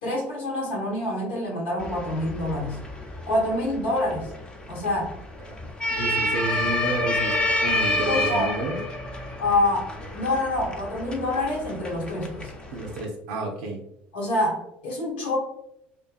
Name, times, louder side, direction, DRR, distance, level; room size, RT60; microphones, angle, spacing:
voice 1, 0.0-2.8 3.3-4.3 4.7-5.1 8.1-8.5 9.4-12.5 14.1-15.4, left 1 dB, 80° left, -3 dB, 1.0 m, -26 dB
sound 1, 1.8-13.0, left 1 dB, 15° left, 0.6 m, -29 dB
voice 2, 5.9-8.8 12.7-13.8, right 2 dB, 70° right, 1 dB, 0.4 m, -30 dB
2.5 x 2.3 x 2.3 m, 0.80 s
hypercardioid pair, 70°, 6 cm